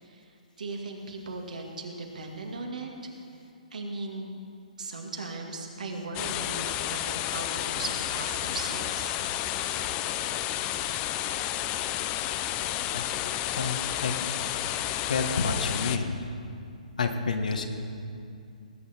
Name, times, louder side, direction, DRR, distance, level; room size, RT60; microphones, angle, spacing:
voice 1, 0.0-3.1 3.7-4.4 4.8-9.1, right 3 dB, 70° right, 1 dB, 2.1 m, -38 dB
sound 1, 6.1-16.0, left 12 dB, 25° left, 0.5 m, -31 dB
voice 2, 13.6-14.1 15.1-16.1 17.0-17.7, left 4 dB, 70° left, 6 dB, 1.3 m, -29 dB
19.5 x 8.8 x 4.4 m, 2.5 s
figure-of-eight pair, 135°, 4 cm